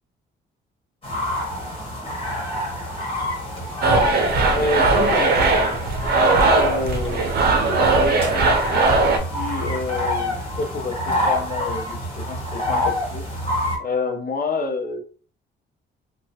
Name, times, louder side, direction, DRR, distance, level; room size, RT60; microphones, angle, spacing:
sound 1, 1.0-13.8, left 1 dB, 30° left, 1.4 m, -27 dB
sound 2, 3.8-9.2, right 3 dB, 55° right, 0.7 m, -19 dB
voice 1, 4.5-5.4 6.5-7.3 7.6-8.6 9.3-13.2 13.8-15.0, left 3 dB, 45° left, 5 dB, 0.7 m, -28 dB
2.9 x 2.3 x 2.8 m, 0.40 s
cardioid pair, 90°, 20 cm